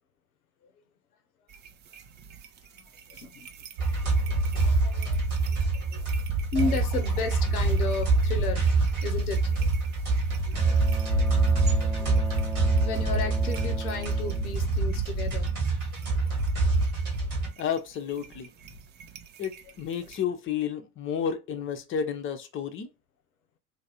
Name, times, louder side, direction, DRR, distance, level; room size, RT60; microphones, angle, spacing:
sound 1, 1.5-20.2, right 6 dB, 25° right, 0.4 m, -41 dB
voice 1, 2.7-3.5 4.5-5.2 5.5-6.1 6.5-8.7 9.0-9.7 10.4-10.8 11.2-11.3 11.8-12.2 12.8-15.5 15.9-16.5 17.1-17.3, left 4 dB, 80° left, 0.7 m, -34 dB
sound 2, 3.8-17.5, right 3 dB, 80° right, 1.6 m, -25 dB
Bowed string instrument, 10.5-15.5, equal, 10° right, 0.7 m, -40 dB
voice 2, 17.6-18.5 19.4-22.9, left 7 dB, 30° left, 0.6 m, -31 dB
3.1 x 2.5 x 2.8 m
figure-of-eight pair, 65°, 44 cm